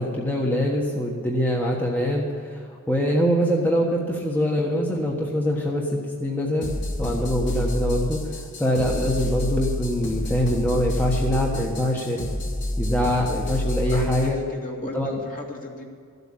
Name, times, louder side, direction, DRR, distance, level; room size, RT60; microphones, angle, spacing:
voice 1, 0.0-6.7 7.0-12.2 12.8-14.4 14.8-15.2, equal, 10° left, -2 dB, 1.4 m, -24 dB
sound 1, 6.6-14.3, left 1 dB, 55° left, 3.1 m, -28 dB
voice 2, 11.5-12.0 13.9-15.0 15.2-15.8, left 1 dB, 40° left, 0 dB, 2.3 m, -37 dB
14.0 x 8.1 x 8.8 m, 2.2 s
head